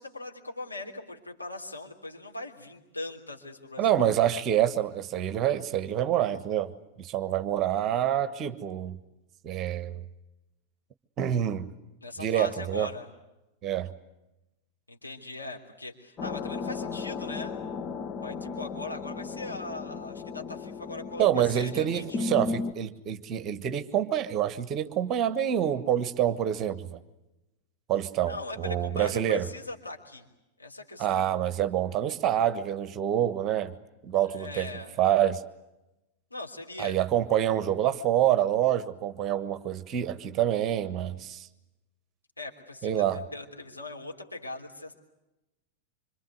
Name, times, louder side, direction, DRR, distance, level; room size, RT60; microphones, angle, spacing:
voice 1, 0.0-4.0 12.0-13.1 14.9-17.5 18.2-22.3 28.2-30.3 30.6-31.3 34.3-34.9 36.3-37.0 42.4-43.1 43.3-45.0, left 2 dB, 85° left, 0 dB, 3.4 m, -40 dB
voice 2, 3.8-6.7 7.0-9.0 9.4-10.0 11.2-11.7 12.2-12.9 13.6-13.9 21.2-27.0 27.9-29.5 31.0-33.7 34.0-34.7 35.0-35.4 36.8-41.5 42.8-43.2, right 11 dB, 30° right, 12 dB, 1.4 m, -27 dB
sound 1, 16.2-22.7, left 4 dB, 30° left, 1.0 m, -35 dB
26.0 x 26.0 x 8.1 m, 0.96 s
figure-of-eight pair, 90°, 0 cm